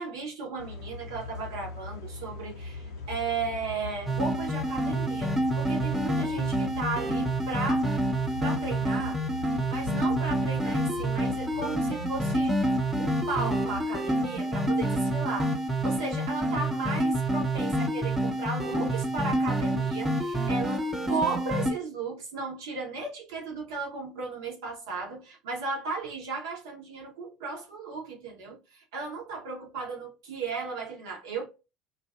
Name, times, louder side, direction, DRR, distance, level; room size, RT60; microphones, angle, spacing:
voice 1, 0.0-7.9 8.4-9.2 9.7-12.5 13.0-15.6 15.8-31.5, right 4 dB, 65° right, 1.1 m, -35 dB
sound 1, 0.6-13.8, left 3 dB, 65° left, 0.6 m, -41 dB
sound 2, 4.1-21.7, right 1 dB, 10° right, 0.7 m, -28 dB
2.5 x 2.5 x 2.3 m
figure-of-eight pair, 70°, 2 cm